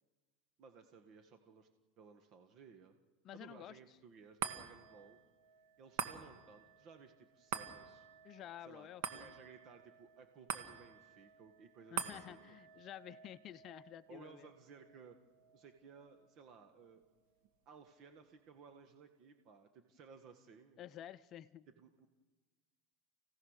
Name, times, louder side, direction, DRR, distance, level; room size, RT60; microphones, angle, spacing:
voice 1, 0.6-1.7 2.0-2.9 3.3-5.2 5.8-8.1 8.6-12.6 14.1-15.2 15.5-17.0 17.6-20.8 21.8-22.1, right 5 dB, 50° right, 7 dB, 1.6 m, -58 dB
voice 2, 3.2-3.8 8.2-9.3 11.9-14.5 20.8-21.7, left 11 dB, 45° left, 12 dB, 0.6 m, -51 dB
sound 1, 4.4-17.0 17.4-17.5, right 8 dB, 70° right, 1.7 m, -47 dB
29.0 x 16.5 x 6.6 m, 1.3 s
supercardioid pair, 110°, 0 cm